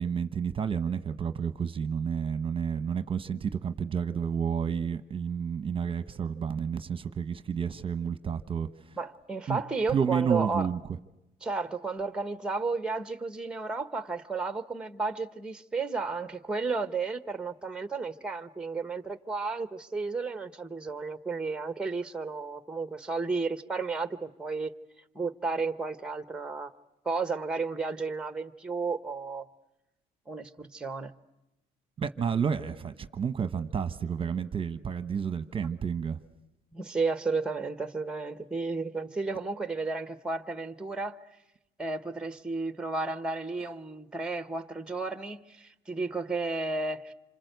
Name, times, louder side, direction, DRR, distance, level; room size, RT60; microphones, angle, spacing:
voice 1, 0.0-8.7 9.5-9.6 9.9-10.8 32.0-36.2, right 7 dB, 30° right, 1.1 m, -30 dB
voice 2, 9.0-10.7 11.4-24.7 25.1-26.7 27.0-29.4 30.3-31.1 36.7-41.2 41.8-47.1, right 4 dB, 5° right, 1.2 m, -33 dB
27.5 x 25.5 x 8.1 m
cardioid pair, 110°, 17 cm